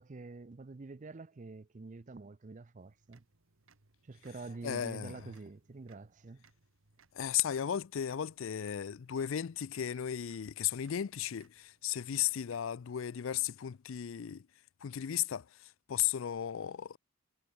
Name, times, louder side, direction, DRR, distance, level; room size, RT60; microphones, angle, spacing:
voice 1, 0.0-3.3 4.0-6.4, right 3 dB, 35° right, 0.5 m, -47 dB
sound 1, 2.8-12.9, right 4 dB, 65° right, 1.9 m, -69 dB
voice 2, 4.6-5.3 7.1-14.5 14.8-17.0, left 10 dB, 65° left, 0.4 m, -35 dB
head